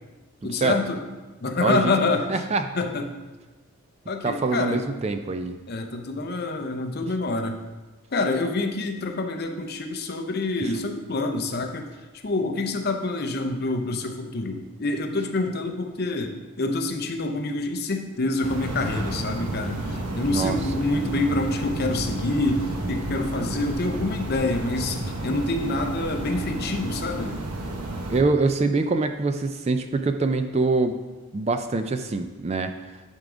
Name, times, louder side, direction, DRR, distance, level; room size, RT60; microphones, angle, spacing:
voice 1, 0.4-1.0 1.4-2.4 2.8-3.1 4.1-4.8 5.7-7.6 8.1-11.9 12.2-27.4, left 2 dB, 45° left, 5 dB, 0.7 m, -27 dB
voice 2, 2.3-2.6 4.2-5.6 20.3-20.6 28.1-31.0 31.3-32.7, right 3 dB, 30° right, 8 dB, 0.3 m, -24 dB
sound 1, 18.4-28.2, right 2 dB, 85° right, 1.1 m, -31 dB
11.0 x 3.8 x 4.9 m, 1.2 s
head